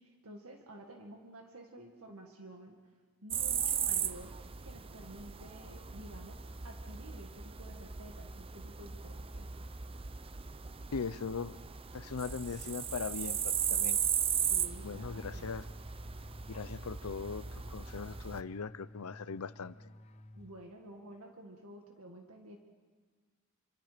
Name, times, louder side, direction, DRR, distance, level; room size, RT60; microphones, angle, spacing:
voice 1, 0.0-2.8 3.2-9.5 14.5-15.5 20.3-22.6, right 1 dB, 75° right, 3 dB, 2.0 m, -51 dB
sound 1, 3.3-18.4, right 8 dB, 25° right, 0.6 m, -37 dB
voice 2, 10.9-11.6 11.9-14.0 14.8-15.6 16.5-19.8, left 5 dB, 80° left, 16 dB, 0.6 m, -40 dB
sound 2, 14.9-21.0, left 1 dB, 30° left, 0.7 m, -53 dB
27.5 x 25.0 x 5.1 m, 1.4 s
head